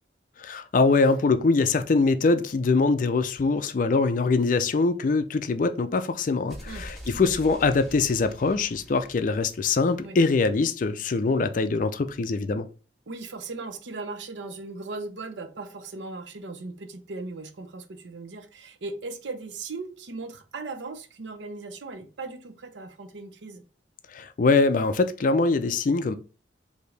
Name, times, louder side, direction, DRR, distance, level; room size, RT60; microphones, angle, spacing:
voice 1, 0.4-12.7 24.1-26.2, left 3 dB, 45° left, 0.4 m, -23 dB
sound 1, 6.5-10.3, equal, ahead, 1.6 m, -44 dB
voice 2, 7.1-7.5 10.0-10.2 13.1-23.6, right 3 dB, 80° right, 0.7 m, -38 dB
4.8 x 2.7 x 3.2 m
head